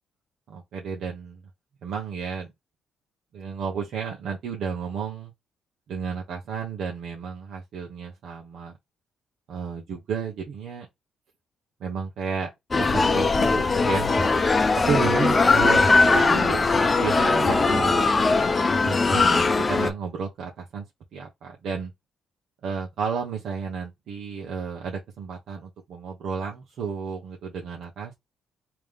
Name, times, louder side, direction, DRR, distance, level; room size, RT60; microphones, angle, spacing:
voice 1, 0.5-1.4 1.8-2.5 3.3-5.3 5.9-8.7 9.5-10.9 11.8-14.1 14.9-16.6 16.9-18.1 18.8-20.8 21.1-21.9 22.6-28.1, right 6 dB, 70° right, 0.9 m, -32 dB
sound 1, 12.7-19.9, left 3 dB, 30° left, 0.6 m, -20 dB
3.5 x 2.9 x 3.3 m
cardioid pair, 90°, 0 cm